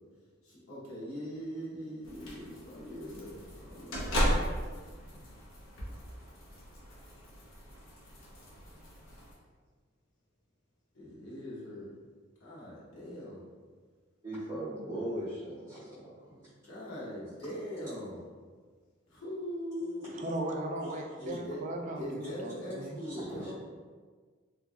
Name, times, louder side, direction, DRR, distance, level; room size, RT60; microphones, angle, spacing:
voice 1, 0.7-4.0 11.0-11.9 12.4-13.4 16.7-18.2 19.1-20.4 21.2-21.6 22.0-23.5, equal, 90° left, -7 dB, 1.0 m, -41 dB
sound 1, 2.0-9.3, equal, 70° left, 0.7 m, -36 dB
voice 2, 14.2-16.4 23.0-23.5, right 1 dB, 20° right, -17 dB, 1.2 m, -39 dB
voice 3, 20.0-23.0, right 1 dB, 35° right, 1 dB, 0.3 m, -37 dB
2.9 x 2.5 x 2.3 m, 1.5 s
head